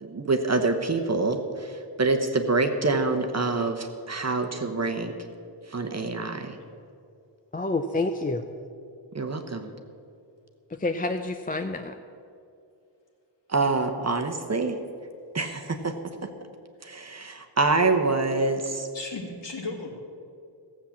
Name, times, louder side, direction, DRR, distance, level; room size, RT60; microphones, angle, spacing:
voice 1, 0.0-5.1 5.7-6.6 9.1-9.7 13.5-14.8 15.3-15.9 16.8-18.9, right 3 dB, 35° right, 5 dB, 0.9 m, -26 dB
voice 2, 7.5-8.4 10.7-11.9, left 2 dB, 20° left, 7 dB, 0.4 m, -28 dB
voice 3, 18.9-19.9, left 3 dB, 60° left, 1 dB, 2.1 m, -35 dB
15.5 x 7.5 x 7.2 m, 2.5 s
wide cardioid pair, 140°, 49 cm